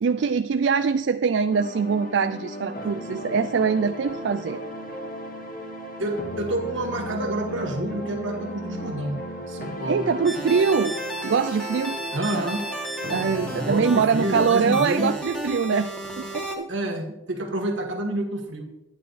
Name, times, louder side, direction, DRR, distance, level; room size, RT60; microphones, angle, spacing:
voice 1, 0.0-4.6 9.9-11.0 11.2-12.0 13.1-16.7, right 5 dB, 70° right, 10 dB, 0.4 m, -23 dB
sound 1, 1.5-14.4, equal, 50° left, 1.8 m, -35 dB
voice 2, 6.0-10.1 12.1-12.7 13.5-15.1 16.7-18.7, right 1 dB, 85° right, 1 dB, 2.2 m, -28 dB
sound 2, 10.2-16.6, right 2 dB, 5° left, 1.6 m, -33 dB
11.0 x 9.7 x 4.1 m, 0.92 s
head